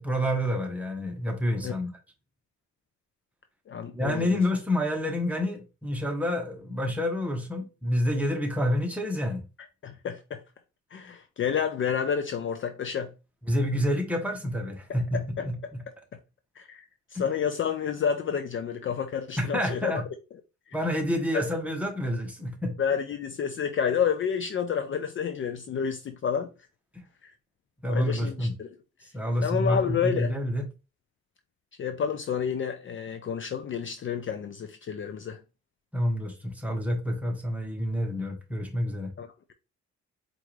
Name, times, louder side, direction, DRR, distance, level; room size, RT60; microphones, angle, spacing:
voice 1, 0.0-1.9 3.9-9.4 13.5-15.2 15.4-15.8 17.1-17.2 19.4-20.0 20.7-22.8 27.8-28.5 29.1-30.6 35.9-39.1, left 1 dB, 5° right, 1.0 m, -28 dB
voice 2, 3.7-4.4 9.8-10.4 10.9-13.1 15.1-15.7 16.1-16.2 16.6-16.8 17.1-20.0 20.7-20.8 21.3-21.5 22.8-26.5 27.2-27.3 27.9-28.7 29.4-30.3 31.8-35.4 39.2-39.5, left 7 dB, 45° left, 0.5 m, -30 dB
4.4 x 2.6 x 3.1 m
cardioid pair, 90°, 30 cm